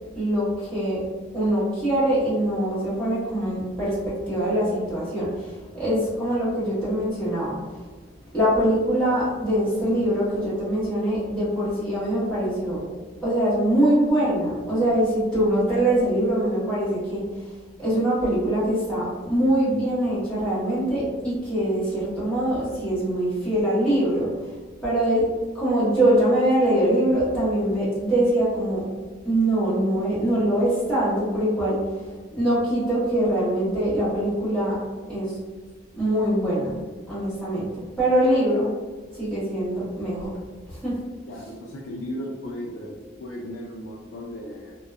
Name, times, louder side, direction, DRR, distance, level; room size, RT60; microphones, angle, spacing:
voice 1, 0.1-1.0 1.3-7.6 8.3-12.8 13.2-17.2 17.8-24.3 24.8-25.2 25.5-28.8 29.2-31.8 32.3-34.8 35.1-35.4 35.9-36.7 37.1-37.7 38.0-38.7 39.1-40.3 40.7-40.9, right 1 dB, 5° left, -12 dB, 1.2 m, -23 dB
voice 2, 41.3-44.8, equal, 75° left, -3 dB, 0.4 m, -36 dB
2.6 x 2.2 x 2.4 m, 1.4 s
head